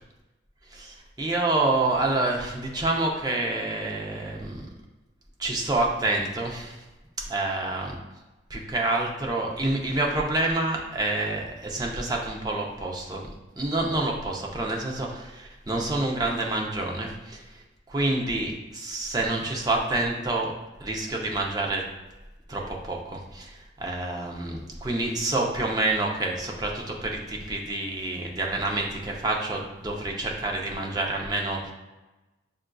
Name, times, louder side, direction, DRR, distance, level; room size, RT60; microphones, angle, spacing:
voice 1, 1.2-4.7 5.4-6.8 7.2-8.0 8.5-13.3 13.6-20.5 20.8-21.9 22.5-31.7, right 2 dB, 20° right, -1 dB, 0.5 m, -28 dB
6.8 x 2.5 x 2.3 m, 1.1 s
head